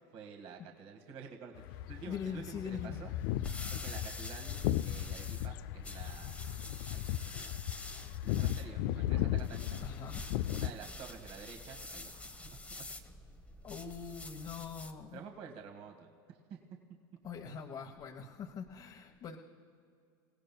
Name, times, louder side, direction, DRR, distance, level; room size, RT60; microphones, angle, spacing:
voice 1, 0.1-3.1 3.7-6.5 6.9-7.6 8.2-9.8 10.5-12.8 15.1-16.4, right 6 dB, 50° right, 2 dB, 1.9 m, -50 dB
sound 1, 1.6-10.7, left 13 dB, 70° left, 0.4 m, -36 dB
voice 2, 2.1-3.0 9.8-10.2 13.6-15.2 17.2-19.4, left 6 dB, 40° left, 0 dB, 1.2 m, -42 dB
sound 2, 3.1-15.0, left 2 dB, 10° left, 0.9 m, -47 dB
29.5 x 17.0 x 2.3 m, 2.3 s
supercardioid pair, 115°, 13 cm